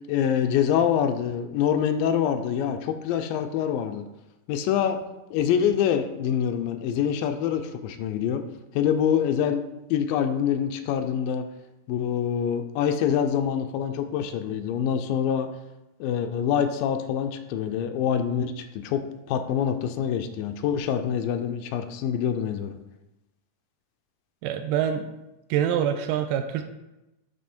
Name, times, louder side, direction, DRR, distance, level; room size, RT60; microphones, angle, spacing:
voice 1, 0.1-4.0 4.5-5.0 5.3-8.4 8.8-9.6 9.9-11.5 11.9-15.5 16.0-22.8, left 8 dB, 85° left, 8 dB, 2.3 m, -25 dB
voice 2, 24.4-25.1 25.5-26.6, right 9 dB, 80° right, 7 dB, 2.1 m, -25 dB
9.5 x 3.4 x 4.3 m, 0.95 s
omnidirectional pair, 4.0 m